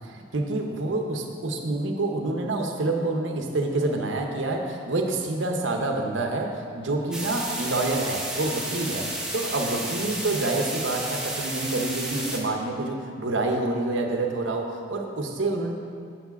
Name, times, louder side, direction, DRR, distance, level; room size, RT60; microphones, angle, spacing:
voice 1, 0.0-9.1 9.3-15.7, right 2 dB, 70° right, 2 dB, 0.8 m, -27 dB
sound 1, 7.1-12.4, right 1 dB, 5° right, 0.8 m, -32 dB
7.3 x 4.8 x 5.8 m, 2.3 s
head